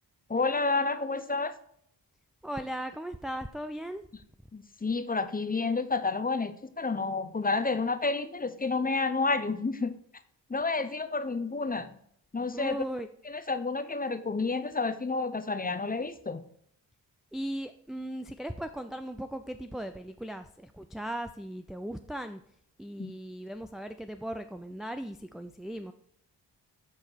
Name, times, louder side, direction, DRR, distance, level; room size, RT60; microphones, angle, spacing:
voice 1, 0.3-1.5 4.5-9.9 10.5-12.0 12.3-12.8 13.2-16.4 23.0-23.1, left 3 dB, 20° left, 11 dB, 0.7 m, -30 dB
voice 2, 2.4-4.0 12.5-13.1 17.3-22.4 22.8-25.9, right 1 dB, ahead, 7 dB, 0.4 m, -37 dB
7.5 x 4.6 x 4.6 m, 0.68 s
supercardioid pair, 40°, 43 cm